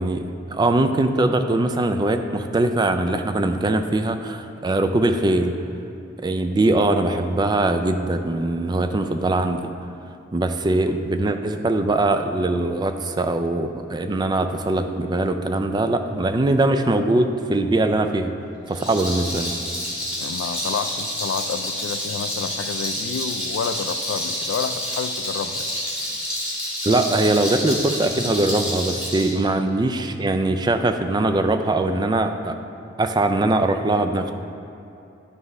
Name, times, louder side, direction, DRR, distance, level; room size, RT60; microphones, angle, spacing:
voice 1, 0.0-5.5 6.2-9.7 10.3-18.3 18.7-19.5 26.8-32.6 33.0-34.3, right 2 dB, 20° right, 7 dB, 0.3 m, -21 dB
Rattle, 18.7-29.3, equal, 5° right, 1.8 m, -28 dB
voice 2, 20.2-25.7, left 6 dB, 75° left, 10 dB, 0.3 m, -29 dB
9.5 x 3.4 x 5.4 m, 2.8 s
head